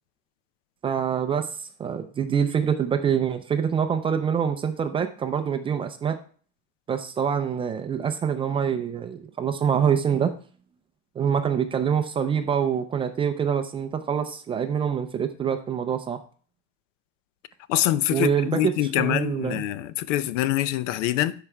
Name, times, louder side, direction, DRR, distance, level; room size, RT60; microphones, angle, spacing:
voice 1, 0.8-6.2 6.9-10.3 11.2-16.2 18.1-19.6, right 7 dB, 15° right, 0.3 m, -25 dB
voice 2, 17.7-21.3, left 13 dB, 85° left, 0.6 m, -25 dB
12.0 x 4.9 x 3.3 m
cardioid pair, 155°, 36 cm